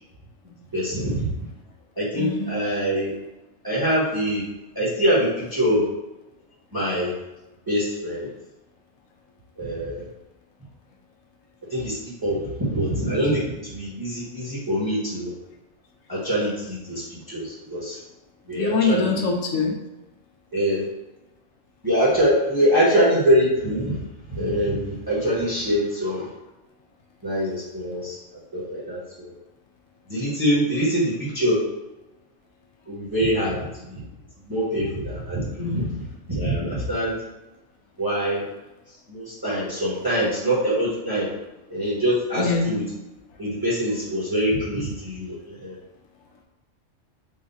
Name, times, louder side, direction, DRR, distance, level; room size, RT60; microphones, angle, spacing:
voice 1, 0.7-1.3 2.0-3.1 3.6-4.4 4.7-5.9 6.7-7.1 7.7-8.3 9.6-10.0 11.7-15.3 16.1-18.0 18.5-19.1 20.5-20.8 21.8-24.0 24.3-26.3 27.2-29.3 30.1-31.6 32.9-34.0 34.4-35.8 36.3-37.2 38.0-38.4 39.1-41.3 41.7-42.8 43.4-45.8, equal, 20° right, -8 dB, 1.2 m, -24 dB
voice 2, 2.2-2.5 18.5-19.8 35.6-36.0 42.4-42.8, left 4 dB, 85° left, 1 dB, 1.0 m, -24 dB
4.0 x 2.5 x 4.1 m, 0.98 s
omnidirectional pair, 1.3 m